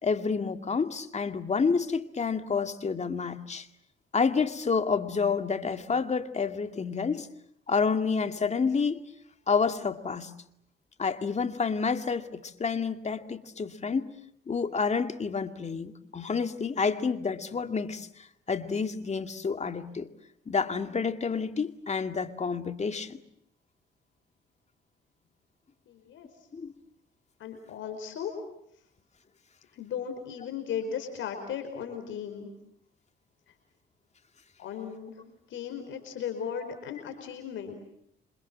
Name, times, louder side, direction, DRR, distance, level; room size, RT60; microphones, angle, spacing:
voice 1, 0.0-3.7 4.1-7.3 7.7-9.0 9.5-10.3 11.0-14.0 14.5-18.1 18.5-20.1 20.5-23.2 26.5-26.7, left 5 dB, 35° left, 8 dB, 2.3 m, -29 dB
voice 2, 25.9-26.3 27.4-28.3 29.7-32.5 34.6-35.2 35.5-37.7, left 7 dB, 75° left, 6 dB, 5.0 m, -36 dB
28.5 x 26.5 x 7.5 m, 0.74 s
cardioid pair, 90°, 20 cm